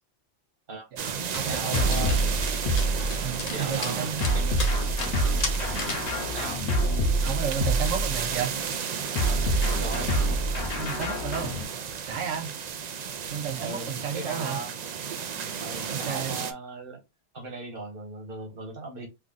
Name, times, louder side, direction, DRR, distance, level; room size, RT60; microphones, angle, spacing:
voice 1, 0.9-2.0 3.2-4.2 6.6-6.7 7.1-8.6 10.8-11.5 12.1-12.5 13.3-14.6 15.9-16.4, right 8 dB, 85° right, 1.0 m, -32 dB
sound 1, 1.0-16.5, right 7 dB, 65° right, 0.4 m, -33 dB
Dog, 1.3-6.1, left 4 dB, 40° left, 0.7 m, -37 dB
voice 2, 1.4-2.4 3.5-4.8 6.3-6.7 9.8-10.1 13.6-14.7 15.6-17.0 17.3-19.1, right 2 dB, 50° right, 1.5 m, -38 dB
sound 2, 1.7-3.5 4.2-8.4 9.2-11.6, right 1 dB, 65° left, 1.0 m, -26 dB
3.3 x 2.3 x 3.8 m
omnidirectional pair, 1.2 m